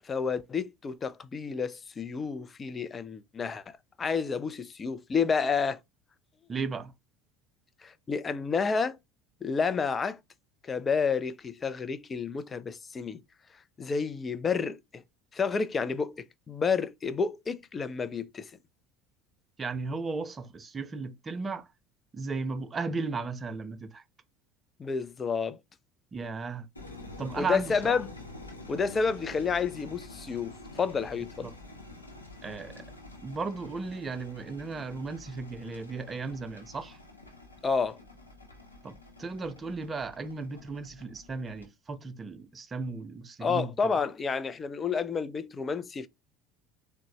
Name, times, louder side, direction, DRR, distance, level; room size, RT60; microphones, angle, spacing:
voice 1, 0.0-3.7 4.0-5.8 7.8-9.0 9.4-10.2 10.6-13.2 13.8-15.0 15.3-18.5 24.8-25.6 27.4-28.1 28.7-31.5 37.6-38.0 43.4-46.1, left 5 dB, 25° left, 0.5 m, -30 dB
voice 2, 6.5-6.9 19.6-21.7 22.1-24.0 26.1-26.7 27.2-28.0 31.4-31.5 32.4-32.8 33.2-37.0 38.8-43.7, right 4 dB, 25° right, 0.6 m, -35 dB
sound 1, 26.7-41.7, left 2 dB, 90° left, 0.8 m, -48 dB
3.9 x 2.2 x 2.9 m
figure-of-eight pair, 70°, 0 cm